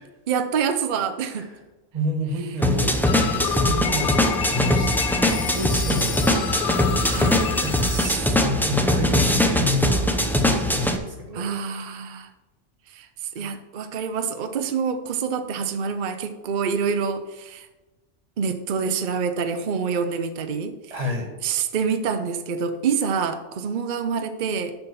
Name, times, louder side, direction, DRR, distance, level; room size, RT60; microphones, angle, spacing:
voice 1, 0.3-1.5 7.1-7.5 11.3-12.3 12.9-13.1 13.4-17.7 18.4-20.8 21.4-24.7, right 6 dB, 50° right, 8 dB, 0.7 m, -26 dB
voice 2, 1.3-1.6 1.9-4.2 4.5-5.0 5.5-6.8 7.6-11.5 13.4-13.5 20.9-21.3, left 1 dB, 30° right, 2 dB, 1.6 m, -29 dB
sound 1, 2.6-11.0, left 1 dB, ahead, 0.4 m, -21 dB
sound 2, 3.0-8.1, left 9 dB, 60° left, 0.7 m, -29 dB
6.8 x 5.9 x 7.0 m, 1.1 s
omnidirectional pair, 1.3 m